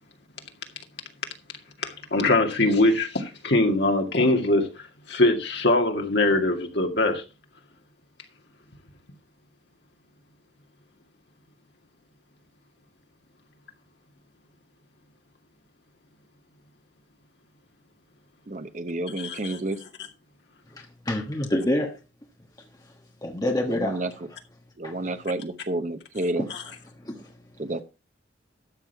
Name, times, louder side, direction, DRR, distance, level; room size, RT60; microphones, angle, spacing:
voice 1, 1.8-7.2 19.2-19.6 26.5-26.6, left 2 dB, 60° left, 2.2 m, -22 dB
voice 2, 18.5-19.8 23.7-24.3 24.8-26.5 27.6-27.8, right 2 dB, 40° right, 0.8 m, -30 dB
voice 3, 21.1-21.9 23.2-24.0 24.8-24.9 26.4-26.5 27.0-27.3, left 1 dB, 20° left, 1.3 m, -26 dB
12.5 x 7.4 x 4.7 m
head